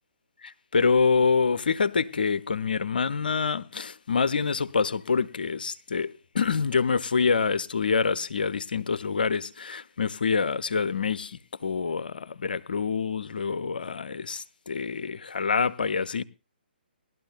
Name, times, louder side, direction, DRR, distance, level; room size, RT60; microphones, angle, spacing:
voice 1, 0.4-16.2, left 5 dB, 60° left, 0.6 m, -26 dB
20.0 x 12.0 x 2.2 m
figure-of-eight pair, 130°, 5 cm